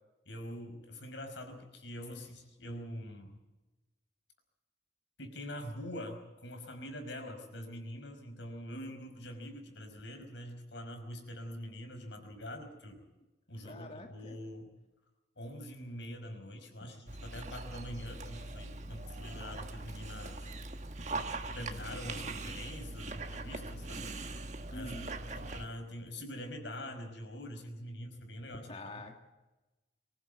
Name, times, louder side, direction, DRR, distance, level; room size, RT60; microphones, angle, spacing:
voice 1, 0.3-3.4 5.2-13.0 13.5-14.7 15.4-20.5 21.5-24.0 24.7-24.9 25.3-28.7, equal, 80° left, 5 dB, 5.2 m, -44 dB
voice 2, 13.6-14.4 24.7-25.1 28.7-29.1, left 1 dB, 30° left, 3 dB, 2.0 m, -45 dB
Dog, 17.1-25.7, right 2 dB, 40° right, 1.5 m, -41 dB
24.5 x 15.5 x 8.1 m, 1.1 s
head